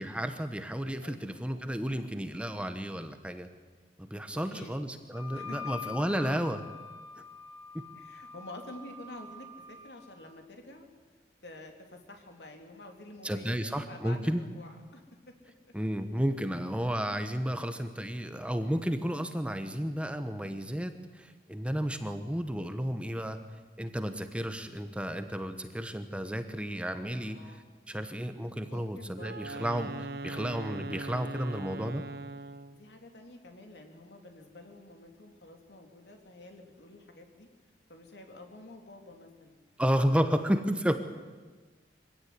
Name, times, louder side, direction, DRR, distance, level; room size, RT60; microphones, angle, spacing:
voice 1, 0.0-3.5 4.0-6.7 7.7-7.8 13.2-14.4 15.7-23.4 23.8-27.4 27.9-32.0 39.8-41.0, equal, 5° right, 8 dB, 1.2 m, -32 dB
voice 2, 4.3-4.7 5.3-5.6 7.9-10.9 11.4-15.1 27.1-27.7 28.6-29.3 32.7-37.5 37.9-39.6 40.9-41.0, left 2 dB, 75° left, 3 dB, 3.6 m, -49 dB
Wind instrument woodwind instrument, 5.1-10.1, left 6 dB, 25° left, 3.1 m, -45 dB
Wind instrument woodwind instrument 2, 29.1-32.8, right 2 dB, 60° right, 1.1 m, -40 dB
24.5 x 17.0 x 9.6 m, 1.3 s
head